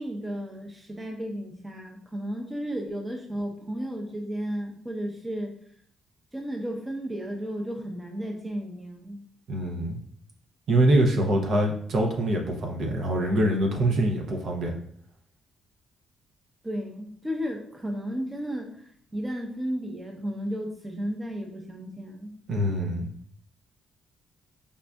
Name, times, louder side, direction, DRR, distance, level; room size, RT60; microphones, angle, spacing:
voice 1, 0.0-5.5 6.3-9.2 16.6-18.7 19.1-22.3, equal, 15° right, 2 dB, 0.6 m, -33 dB
voice 2, 9.5-10.0 10.7-14.8 22.5-23.1, right 1 dB, 65° right, 2 dB, 0.6 m, -24 dB
5.1 x 2.4 x 2.2 m, 0.63 s
cardioid pair, 90°, 0 cm